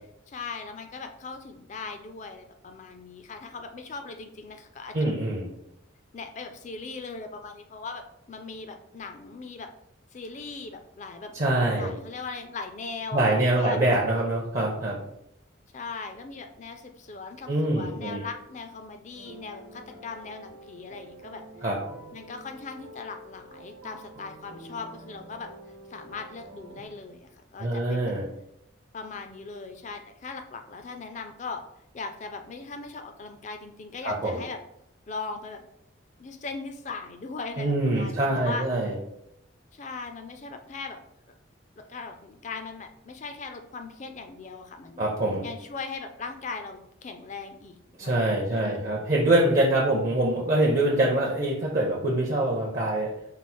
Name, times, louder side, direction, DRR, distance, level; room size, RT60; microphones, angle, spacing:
voice 1, 0.3-5.1 6.1-9.7 10.1-11.3 11.8-13.8 15.7-21.4 22.1-25.5 25.9-28.1 28.9-31.6 31.9-34.6 35.1-35.6 36.2-38.7 39.7-41.0 41.8-45.1 45.4-48.2 48.4-48.9, left 4 dB, 35° left, 7 dB, 0.4 m, -39 dB
voice 2, 4.9-5.5 11.3-11.9 13.1-15.0 17.5-18.2 21.6-21.8 27.6-28.3 34.0-34.4 37.6-38.9 45.0-45.5 48.0-53.1, right 1 dB, 40° right, -2 dB, 0.5 m, -24 dB
sound 1, 19.1-26.9, right 1 dB, 75° right, 1.0 m, -48 dB
4.6 x 2.0 x 4.2 m, 0.79 s
head